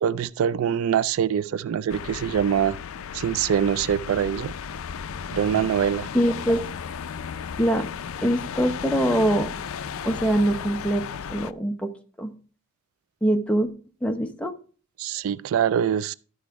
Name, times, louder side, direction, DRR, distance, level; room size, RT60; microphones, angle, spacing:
voice 1, 0.0-2.8 3.1-4.5 5.3-6.1 15.0-16.1, right 8 dB, 70° right, 0.3 m, -24 dB
sound 1, 1.9-11.5, left 7 dB, 65° left, 0.4 m, -35 dB
voice 2, 6.1-6.7 7.6-7.8 8.2-9.6 10.0-11.0 11.3-11.9 12.2-12.3 13.2-13.7 14.0-14.5, right 1 dB, 5° left, 0.8 m, -23 dB
12.5 x 4.8 x 4.7 m
head